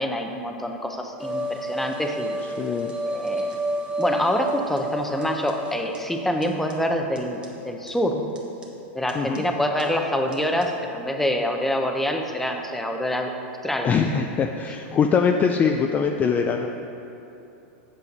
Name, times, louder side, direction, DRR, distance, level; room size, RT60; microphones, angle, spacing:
voice 1, 0.0-2.4 3.1-3.5 4.0-8.2 8.9-13.3 13.6-13.9, left 1 dB, 5° left, 3 dB, 0.8 m, -26 dB
sound 1, 1.2-6.0 6.4-6.5 6.7-6.8 7.2-7.3 7.4-7.5 7.9-8.0 8.4-8.6 9.1-9.4 9.8-9.9 10.3-10.4 10.6-10.7, right 1 dB, 15° right, 1.3 m, -30 dB
voice 2, 2.4-2.9 9.1-9.5 13.8-16.7, left 6 dB, 25° left, 4 dB, 0.4 m, -22 dB
8.3 x 7.0 x 5.4 m, 2.9 s
hypercardioid pair, 125°, 7 cm